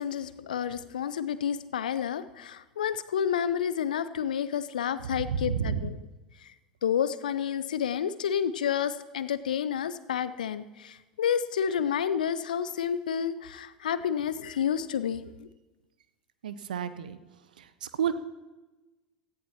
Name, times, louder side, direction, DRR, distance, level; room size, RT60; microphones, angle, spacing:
voice 1, 0.0-5.9 6.8-15.5, left 8 dB, 70° left, 15 dB, 0.5 m, -30 dB
voice 2, 5.1-5.9 16.4-17.2 17.6-18.1, right 7 dB, 70° right, 13 dB, 0.7 m, -31 dB
17.0 x 14.0 x 2.9 m, 1.1 s
figure-of-eight pair, 75°, 5 cm